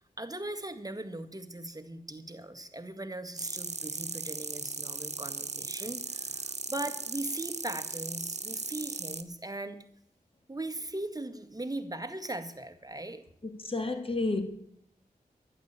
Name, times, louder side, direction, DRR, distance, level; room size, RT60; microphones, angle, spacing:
voice 1, 0.0-9.8 10.5-13.2, right 1 dB, 25° right, 2.0 m, -39 dB
sound 1, 3.4-9.2, right 3 dB, 45° right, 1.3 m, -37 dB
voice 2, 13.4-14.4, left 3 dB, 35° left, 2.5 m, -31 dB
11.5 x 10.5 x 8.5 m
cardioid pair, 45°, 16 cm